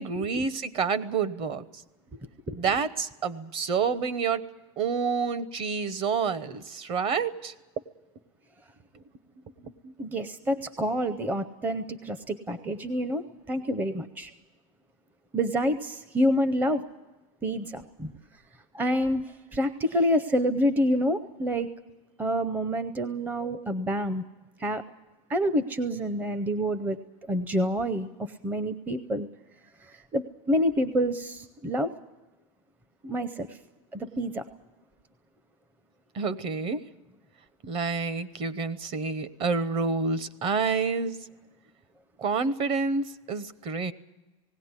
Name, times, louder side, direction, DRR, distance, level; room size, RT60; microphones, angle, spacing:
voice 1, 0.0-1.6 2.5-4.4 4.8-7.5 9.6-9.9 36.1-36.8 37.6-41.2 42.2-43.9, right 5 dB, 30° right, 15 dB, 0.9 m, -28 dB
voice 2, 10.0-14.3 15.3-16.8 17.4-18.1 18.7-19.2 19.5-21.7 22.2-24.2 24.6-24.8 25.3-27.0 27.3-28.1 28.4-29.3 30.1-31.9 33.0-33.5 33.9-34.4, equal, 10° right, 11 dB, 0.6 m, -27 dB
19.0 x 16.5 x 9.6 m, 1.1 s
supercardioid pair, 150°, 17 cm